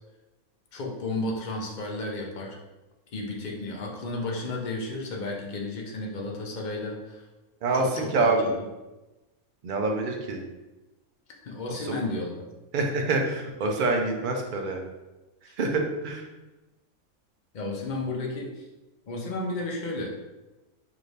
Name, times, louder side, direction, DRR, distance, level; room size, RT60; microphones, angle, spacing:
voice 1, 0.7-2.6 3.1-7.2 7.7-8.3 11.4-12.5 17.5-18.6 19.1-20.1, left 2 dB, 65° left, 0 dB, 0.4 m, -33 dB
voice 2, 7.6-8.5 9.6-10.4 11.8-12.0 12.7-14.8 15.6-16.3, right 3 dB, 65° right, 2 dB, 0.4 m, -26 dB
4.8 x 2.6 x 3.2 m, 1.1 s
omnidirectional pair, 1.5 m